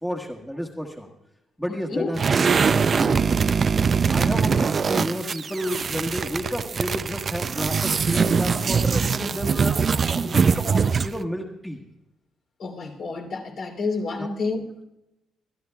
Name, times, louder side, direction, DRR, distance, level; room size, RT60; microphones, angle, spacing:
voice 1, 0.0-1.1 1.6-3.4 3.8-9.8 10.1-11.8 14.2-14.3, equal, 5° left, 1.4 m, -31 dB
voice 2, 1.7-2.1 12.6-14.6, left 4 dB, 65° left, 3.0 m, -29 dB
sound 1, 2.1-11.2, right 5 dB, 45° right, 0.4 m, -22 dB
24.5 x 11.5 x 2.3 m
cardioid pair, 90°, 0 cm